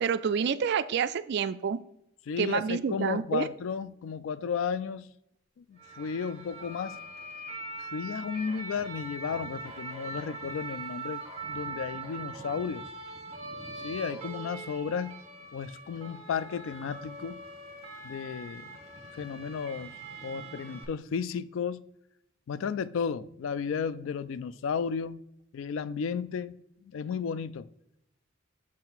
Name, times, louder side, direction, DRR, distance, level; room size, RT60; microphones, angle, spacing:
voice 1, 0.0-1.8 2.4-3.5, right 7 dB, 55° right, 0.3 m, -28 dB
voice 2, 2.3-5.1 5.6-7.0 7.8-11.2 11.5-12.9 13.8-15.1 15.5-17.4 18.0-18.7 19.2-19.9 20.2-21.8 22.5-25.2 25.5-26.6 26.8-27.7, left 6 dB, 65° left, 0.3 m, -33 dB
sound 1, 5.8-20.8, right 3 dB, 30° right, 1.4 m, -42 dB
7.3 x 4.3 x 4.0 m
head